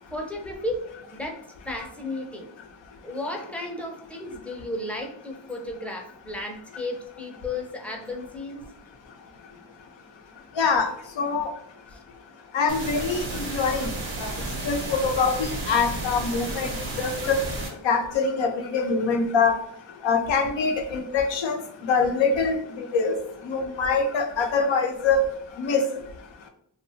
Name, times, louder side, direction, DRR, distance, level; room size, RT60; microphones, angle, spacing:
voice 1, 0.1-2.5 3.0-8.6 11.9-12.0, left 1 dB, 5° left, 0 dB, 0.5 m, -34 dB
voice 2, 10.6-10.9 11.2-11.5 12.5-13.9 14.2-14.3 14.6-16.7 17.0-17.4 17.8-19.5 20.0-21.6 21.9-23.1 23.4-25.2 25.6-25.8, left 4 dB, 75° left, 4 dB, 0.6 m, -24 dB
sound 1, 12.7-17.7, right 2 dB, 85° right, 0.9 m, -32 dB
2.7 x 2.3 x 2.7 m, 0.71 s
cardioid pair, 55°, 45 cm